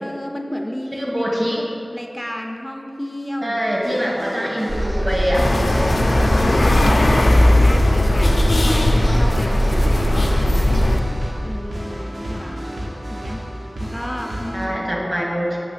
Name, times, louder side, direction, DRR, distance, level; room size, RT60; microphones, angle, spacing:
voice 1, 0.0-3.7 4.0-4.6 5.7-10.9 11.4-12.8 13.1-13.4 13.8-14.9, equal, 10° left, 3 dB, 0.4 m, -32 dB
voice 2, 1.0-1.6 3.4-5.5 14.5-15.6, equal, 65° right, -3 dB, 1.2 m, -23 dB
sound 1, 3.6-14.7, equal, 85° right, 0.8 m, -32 dB
sound 2, 4.7-11.0, right 1 dB, 45° right, 0.6 m, -22 dB
sound 3, 5.3-11.0, left 1 dB, 85° left, 0.4 m, -18 dB
6.7 x 3.0 x 5.6 m, 2.7 s
wide cardioid pair, 50°, 0 cm